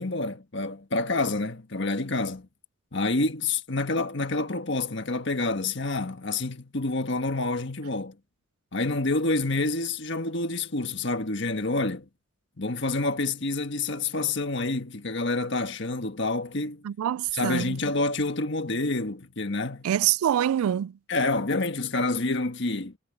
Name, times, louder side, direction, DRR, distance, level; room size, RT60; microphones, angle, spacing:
voice 1, 0.0-2.5 2.9-8.2 8.7-12.1 12.6-16.8 17.3-19.9 21.1-23.0, left 2 dB, 55° left, 1.6 m, -28 dB
voice 2, 16.8-17.8 19.8-20.9, right 10 dB, 85° right, 0.3 m, -25 dB
head